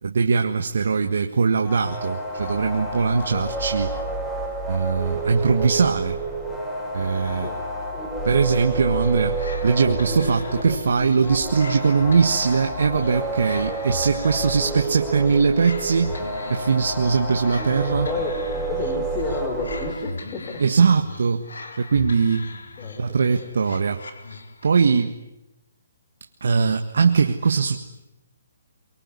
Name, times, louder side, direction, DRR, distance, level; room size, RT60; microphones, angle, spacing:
voice 1, 0.0-3.9 4.7-6.2 6.9-7.5 8.2-16.1 16.5-18.1 20.6-21.5 21.8-22.5 23.0-24.0 24.6-25.1 26.4-27.8, right 5 dB, 70° right, 5 dB, 1.7 m, -21 dB
sound 1, 1.6-19.9, right 2 dB, 10° left, 7.2 m, -29 dB
sound 2, 8.9-24.8, left 3 dB, 80° left, 3.8 m, -38 dB
voice 2, 17.8-20.6 22.8-23.5, left 5 dB, 25° left, 4 dB, 4.0 m, -32 dB
24.0 x 23.5 x 9.9 m, 0.92 s
hypercardioid pair, 150°, 0 cm